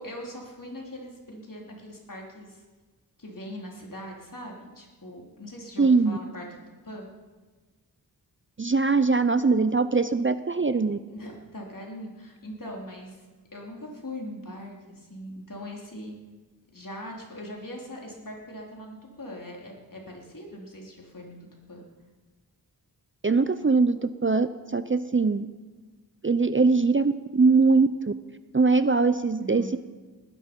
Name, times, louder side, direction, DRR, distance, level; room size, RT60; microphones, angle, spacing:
voice 1, 0.0-2.6 3.2-6.5 6.8-7.1 11.1-13.2 13.5-16.1 16.7-21.8 29.4-29.7, equal, 55° left, -1 dB, 3.4 m, -41 dB
voice 2, 5.8-6.2 8.6-11.0 23.2-25.5 26.2-28.1 28.5-29.8, right 4 dB, 30° right, 12 dB, 0.5 m, -22 dB
19.5 x 10.0 x 5.2 m, 1.3 s
wide cardioid pair, 65°, 39 cm